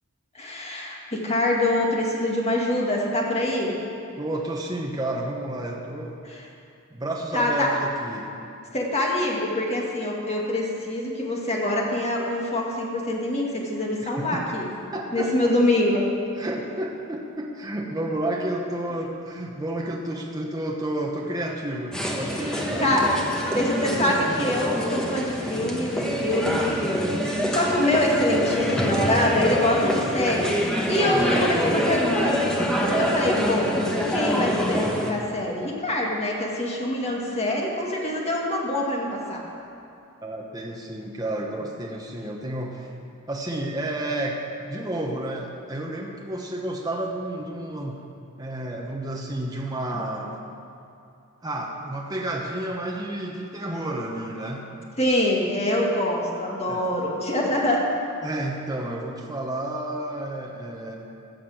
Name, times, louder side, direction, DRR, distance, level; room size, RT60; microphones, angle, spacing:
voice 1, 0.3-3.8 6.3-6.4 7.3-7.7 8.7-14.7 15.1-16.1 22.3-23.1 23.5-30.6 30.9-33.8 34.1-39.4 55.0-57.9, left 1 dB, 30° left, -2 dB, 1.9 m, -25 dB
voice 2, 4.2-6.2 6.9-8.3 14.0-14.4 14.9-15.3 16.4-22.9 31.1-31.3 40.2-42.9 43.3-48.0 48.4-50.4 51.4-54.7 56.7-56.9 58.2-61.0, right 1 dB, 15° right, -1 dB, 1.0 m, -31 dB
sound 1, 21.9-35.1, equal, 5° left, 1.2 m, -25 dB
14.0 x 6.6 x 7.8 m, 2.7 s
head